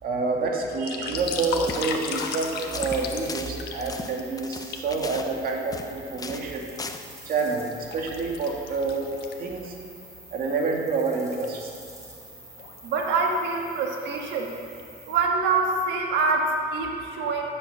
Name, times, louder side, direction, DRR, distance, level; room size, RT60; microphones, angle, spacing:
voice 1, 0.0-6.7 7.3-9.1 9.4-9.7 10.3-11.7, right 4 dB, 60° right, 0 dB, 2.3 m, -28 dB
sound 1, 0.6-4.2 4.7-4.9 5.6-6.4 6.9-9.8 10.1-10.2 10.7-10.8 11.2-11.4 12.3-12.8 13.3-13.5 13.8-14.5 14.8-14.9, left 6 dB, 80° left, 1.3 m, -35 dB
sound 2, 1.1-15.2, right 1 dB, 20° right, 3.7 m, -47 dB
sound 3, 1.6-1.9 2.2-2.4 2.7-5.9 6.2-6.5 6.8-7.0, left 4 dB, 20° left, 0.8 m, -38 dB
voice 2, 12.8-14.5 15.1-17.5, right 4 dB, 90° right, 1 dB, 1.8 m, -25 dB
14.0 x 7.8 x 6.7 m, 2.4 s
cardioid pair, 110°, 17 cm